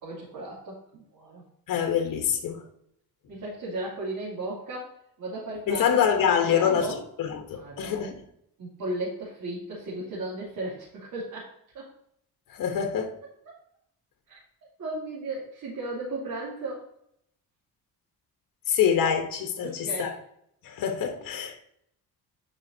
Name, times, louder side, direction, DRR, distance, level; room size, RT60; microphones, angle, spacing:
voice 1, 0.0-1.4 3.3-5.9 6.3-7.0 7.5-8.1 8.6-11.9 13.4-13.6 14.3-14.4 14.8-16.8 19.6-20.2, right 2 dB, 60° right, 3.1 m, -36 dB
voice 2, 1.7-2.6 5.7-6.9 7.2-8.1 12.5-13.2 18.7-20.1 20.6-21.7, left 8 dB, 65° left, 1.4 m, -25 dB
9.7 x 5.5 x 2.9 m
cardioid pair, 130°, 35 cm